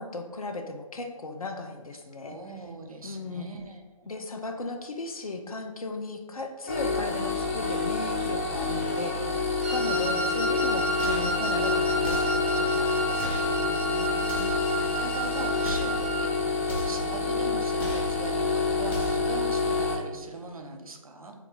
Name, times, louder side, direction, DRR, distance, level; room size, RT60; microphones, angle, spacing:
voice 1, 0.0-2.4 3.0-3.5 4.1-9.4 9.7-13.4, left 3 dB, 90° left, 5 dB, 0.5 m, -36 dB
voice 2, 2.2-4.1 9.8-10.2 13.6-21.3, right 3 dB, 80° right, 3 dB, 0.6 m, -41 dB
sound 1, 6.7-19.9, left 3 dB, 25° left, 0.4 m, -28 dB
Wind instrument woodwind instrument, 9.6-16.3, right 1 dB, 25° right, 0.5 m, -32 dB
sound 2, 11.0-11.4 12.0-12.4 13.2-13.5 14.2-14.7 15.6-16.0 16.7-17.1 17.8-18.2 18.9-19.3, left 1 dB, 40° left, 1.0 m, -37 dB
2.9 x 2.3 x 3.7 m, 1.3 s
figure-of-eight pair, 145°, 18 cm